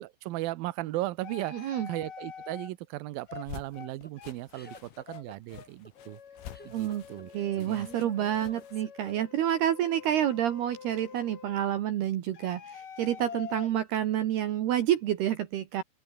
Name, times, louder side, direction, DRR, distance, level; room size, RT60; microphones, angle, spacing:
voice 1, 0.0-6.2 6.6-7.9, right 17 dB, 90° right, 2.0 m, -37 dB
sound 1, 1.2-2.7 3.3-3.5 3.7-3.9 4.2-4.3 4.6-4.8 5.1-5.2 5.5-5.7 6.0-11.7 12.3-13.7, left 7 dB, 45° left, 4.4 m, -46 dB
voice 2, 1.5-1.9 6.7-7.0 7.3-15.8, right 11 dB, 65° right, 3.1 m, -28 dB
sound 2, 3.3-8.8, left 12 dB, 85° left, 4.7 m, -49 dB
sound 3, 3.3-9.6, equal, 5° left, 0.7 m, -51 dB
open air
omnidirectional pair, 5.6 m